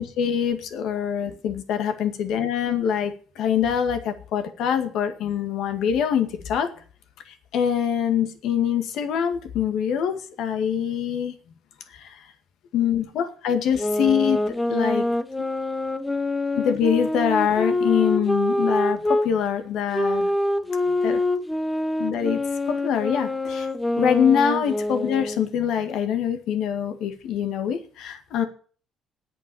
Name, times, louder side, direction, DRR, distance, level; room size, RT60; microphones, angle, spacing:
voice 1, 0.0-6.7 7.5-11.3 11.9-12.2 12.7-15.0 16.6-20.3 21.0-21.2 22.0-23.7 24.0-28.5, left 8 dB, 75° left, 7 dB, 2.1 m, -24 dB
sound 1, 13.8-19.3 19.9-25.5, left 1 dB, 10° left, 0.9 m, -25 dB
9.3 x 8.4 x 8.5 m, 0.43 s
cardioid pair, 120°, 0 cm